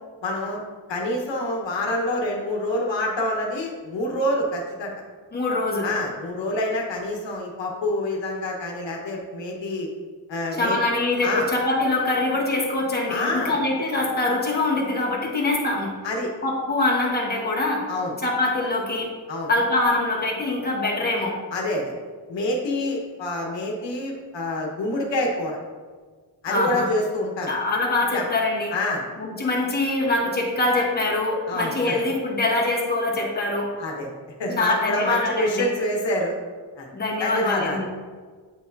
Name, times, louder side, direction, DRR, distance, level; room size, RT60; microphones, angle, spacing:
voice 1, 0.2-0.6 0.9-4.9 5.8-9.9 10.3-10.8 11.2-11.5 13.1-13.6 16.0-16.3 17.9-18.1 19.3-19.5 21.5-21.9 22.3-25.6 26.4-27.5 28.1-28.2 28.7-29.0 31.5-31.9 33.8-36.4 36.8-36.9 37.2-37.8, left 1 dB, 75° left, 0 dB, 1.2 m, -27 dB
voice 2, 5.3-5.9 10.5-15.9 16.4-17.9 18.2-19.1 19.5-21.4 26.5-26.9 27.5-28.7 29.2-33.7 34.6-35.6 36.9-37.9, left 2 dB, 20° left, -3 dB, 1.2 m, -24 dB
8.5 x 5.6 x 2.6 m, 1.5 s
wide cardioid pair, 160°, 44 cm